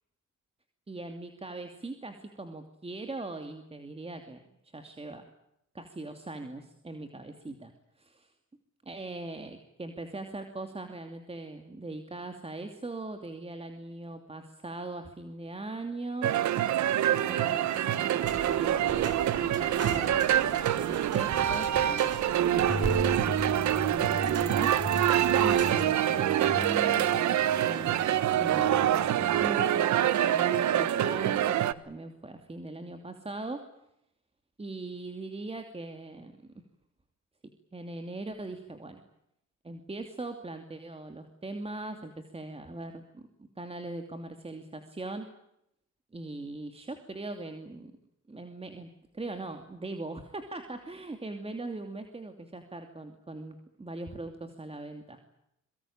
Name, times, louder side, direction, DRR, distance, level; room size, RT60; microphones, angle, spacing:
voice 1, 0.9-4.4 4.7-5.2 5.7-7.7 8.0-8.3 8.9-16.3 17.3-23.3 23.6-24.9 25.4-33.6 34.6-36.3 37.7-39.0 39.6-45.3 46.1-47.9 48.3-48.9 49.1-55.2, right 2 dB, 20° right, 6 dB, 2.7 m, -40 dB
sound 1, 16.2-31.7, right 11 dB, 70° right, 1.2 m, -26 dB
sound 2, 18.2-25.8, right 5 dB, 50° right, 4.7 m, -39 dB
sound 3, 22.7-29.5, left 2 dB, 15° left, 1.4 m, -38 dB
25.0 x 23.5 x 8.8 m, 0.80 s
cardioid pair, 90°, 30 cm